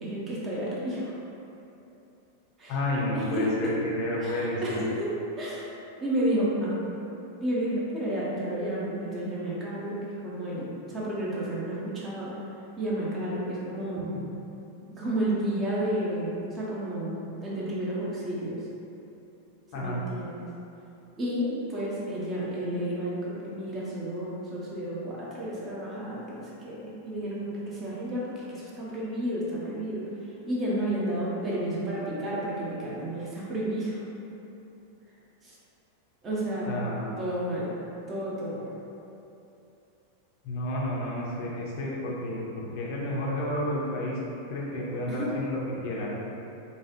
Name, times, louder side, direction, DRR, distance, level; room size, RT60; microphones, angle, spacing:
voice 1, 0.0-1.1 2.6-2.8 3.1-3.7 4.2-5.7 6.0-6.8 7.4-12.3 12.8-14.1 15.0-18.7 19.7-20.5 21.2-34.0 35.4-35.6 36.2-36.8 37.2-37.8 38.1-38.7 45.1-45.5, right 1 dB, 25° right, -7 dB, 0.7 m, -31 dB
voice 2, 2.7-4.8 19.7-20.0 36.7-37.1 40.4-44.2 44.5-46.1, left 1 dB, 45° left, -4 dB, 0.6 m, -31 dB
3.1 x 2.3 x 2.8 m, 2.8 s
figure-of-eight pair, 90°, 0 cm